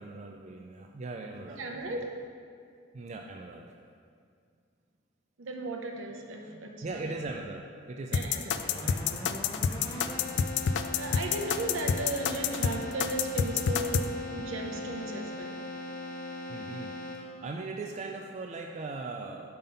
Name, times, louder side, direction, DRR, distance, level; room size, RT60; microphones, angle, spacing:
voice 1, 0.0-2.0 2.9-3.7 6.8-8.5 9.6-9.9 16.5-19.6, right 3 dB, 35° right, 2 dB, 0.3 m, -40 dB
voice 2, 1.6-2.2 5.4-7.1 8.1-9.9 11.0-15.6, right 2 dB, 80° right, 3 dB, 0.8 m, -36 dB
sound 1, 8.1-14.1, left 7 dB, 60° left, 0.3 m, -28 dB
Keyboard (musical), 8.5-17.5, left 2 dB, 20° left, 1.4 m, -40 dB
5.6 x 5.4 x 5.6 m, 2.3 s
head